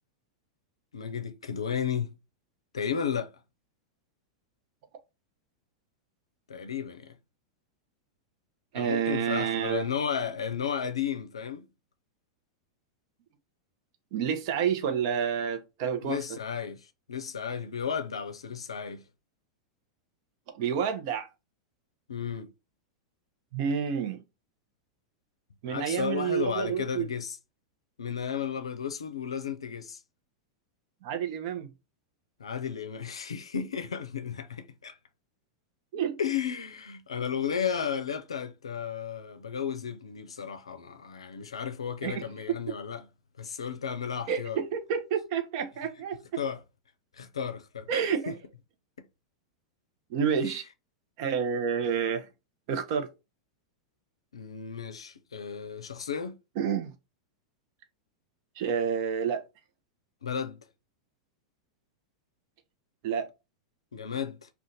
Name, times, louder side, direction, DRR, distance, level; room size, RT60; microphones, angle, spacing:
voice 1, 0.9-2.2 2.7-3.3 6.5-7.2 8.7-11.7 16.0-19.0 22.1-22.5 25.7-27.4 28.0-30.0 32.4-35.0 36.2-43.1 43.4-44.6 46.4-46.6 47.1-47.9 48.3-48.4 50.4-50.6 54.3-56.4 60.2-60.6 63.9-64.5, left 7 dB, 85° left, 0.4 m, -33 dB
voice 2, 8.7-9.8 14.1-16.2 20.5-21.3 23.5-24.2 25.6-27.1 31.0-31.7 35.9-36.2 42.0-42.2 44.3-46.2 47.9-48.3 50.1-50.6 51.2-52.3 52.7-53.1 56.6-56.9 58.6-59.4 63.0-63.3, right 7 dB, 55° right, 0.7 m, -29 dB
2.5 x 2.4 x 3.8 m
hypercardioid pair, 100°, 3 cm